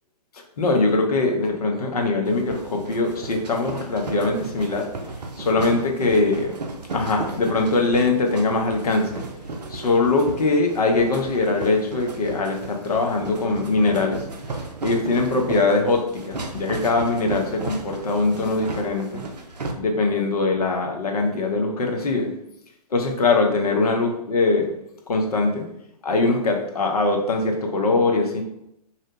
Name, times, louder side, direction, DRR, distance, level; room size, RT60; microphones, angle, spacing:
voice 1, 0.6-4.8 5.4-6.5 6.9-9.2 9.7-14.2 14.8-19.2 19.8-22.3 22.9-24.7 25.1-25.6 26.0-28.4, left 3 dB, 65° left, 2 dB, 0.6 m, -22 dB
sound 1, 2.3-19.7, right 3 dB, 80° right, 0.5 m, -34 dB
2.7 x 2.1 x 2.7 m, 0.80 s
figure-of-eight pair, 120°, 21 cm